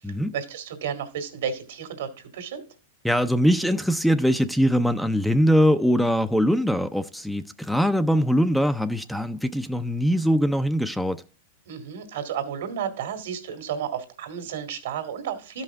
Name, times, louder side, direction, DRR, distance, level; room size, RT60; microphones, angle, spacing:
voice 1, 0.3-2.6 11.7-15.6, right 8 dB, 75° right, 2.0 m, -32 dB
voice 2, 3.0-11.2, equal, ahead, 0.5 m, -22 dB
13.0 x 5.6 x 3.5 m
hypercardioid pair, 110°, 0 cm